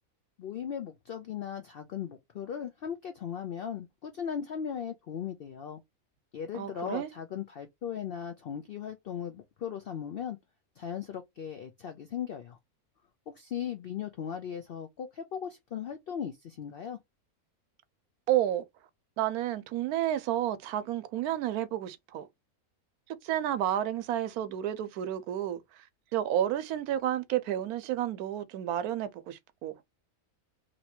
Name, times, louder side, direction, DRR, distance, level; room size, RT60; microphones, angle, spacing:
voice 1, 0.4-5.8 6.3-10.4 10.8-12.6 13.3-17.0, left 8 dB, 75° left, 0.5 m, -37 dB
voice 2, 6.5-7.1 18.3-18.6 19.2-22.3 23.2-25.8 26.1-29.8, right 11 dB, 90° right, 1.1 m, -31 dB
3.0 x 2.7 x 4.1 m
omnidirectional pair, 1.5 m